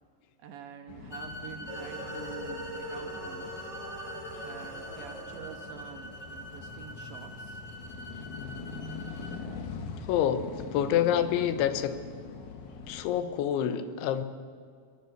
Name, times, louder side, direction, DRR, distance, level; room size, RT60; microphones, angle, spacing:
voice 1, 0.4-3.5 4.4-7.6, right 8 dB, 75° right, 5 dB, 3.5 m, -46 dB
sound 1, 0.9-13.2, left 4 dB, 55° left, 2.4 m, -43 dB
sound 2, 1.1-9.4, equal, 20° left, 2.3 m, -45 dB
sound 3, 1.7-7.1, equal, 25° right, 3.3 m, -42 dB
voice 2, 10.1-12.0 12.9-14.3, left 10 dB, 85° left, 11 dB, 3.6 m, -27 dB
27.5 x 18.0 x 8.0 m, 2.1 s
omnidirectional pair, 5.3 m